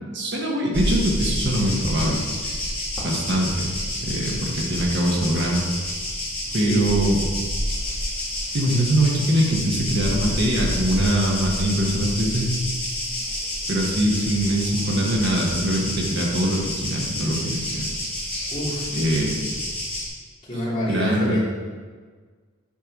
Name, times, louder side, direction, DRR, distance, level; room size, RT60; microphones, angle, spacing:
voice 1, 0.1-2.5 3.0-3.7 4.0-5.6 6.5-7.2 8.5-12.5 13.7-18.0 18.9-19.6 20.9-21.4, right 1 dB, 55° right, -2 dB, 1.4 m, -23 dB
sound 1, 0.7-20.1, left 1 dB, 5° left, 2.6 m, -29 dB
voice 2, 6.6-7.0 18.5-18.9 20.4-21.4, left 1 dB, 25° left, -8 dB, 2.9 m, -27 dB
8.7 x 4.7 x 6.1 m, 1.5 s
head